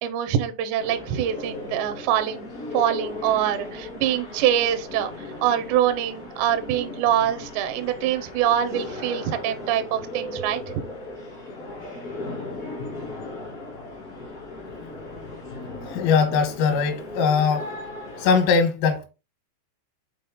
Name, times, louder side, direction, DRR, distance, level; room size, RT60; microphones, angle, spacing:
voice 1, 0.0-2.5 2.7-10.6, right 10 dB, 80° right, 2.5 m, -24 dB
sound 1, 0.8-18.5, left 2 dB, 65° left, 0.8 m, -37 dB
voice 2, 15.9-17.7 18.2-19.1, left 5 dB, 85° left, 3.9 m, -21 dB
8.4 x 3.9 x 3.6 m
omnidirectional pair, 5.8 m